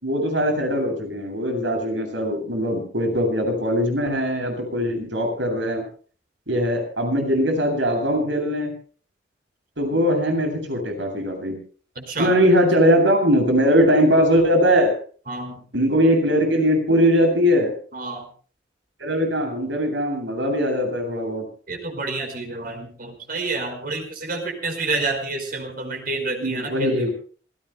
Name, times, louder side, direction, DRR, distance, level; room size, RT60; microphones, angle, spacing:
voice 1, 0.0-5.8 6.5-8.7 9.8-11.6 12.2-14.9 15.7-17.7 19.0-21.4 26.4-27.1, equal, 85° right, 4 dB, 8.0 m, -20 dB
voice 2, 11.9-12.4 15.3-15.6 17.9-18.3 21.7-27.1, right 3 dB, 50° right, 5 dB, 5.1 m, -29 dB
27.0 x 18.0 x 2.2 m, 0.41 s
head